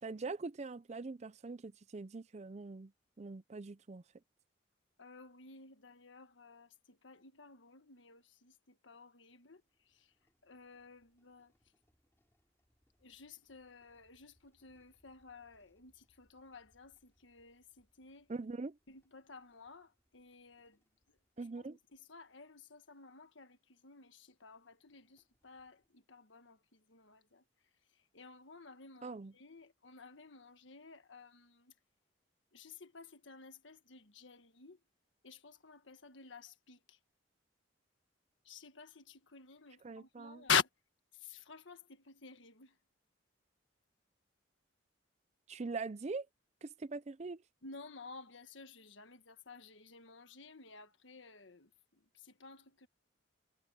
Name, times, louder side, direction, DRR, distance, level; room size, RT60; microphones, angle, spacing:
voice 1, 0.0-2.9 3.2-4.0 18.3-18.8 21.4-21.8 29.0-29.3 39.8-40.4 45.5-46.3 46.6-47.4, right 3 dB, 35° right, 0.5 m, -42 dB
voice 2, 5.0-10.1 10.4-11.5 13.0-18.3 18.9-20.8 21.6-21.7 21.9-27.4 27.9-31.7 32.5-34.8 35.2-37.0 38.4-40.7 41.1-42.8 47.6-52.9, left 7 dB, 75° left, 1.5 m, -46 dB
sound 1, 9.3-22.6 23.3-23.4 23.6-23.7 24.3-25.9, equal, 15° left, 5.1 m, -78 dB
head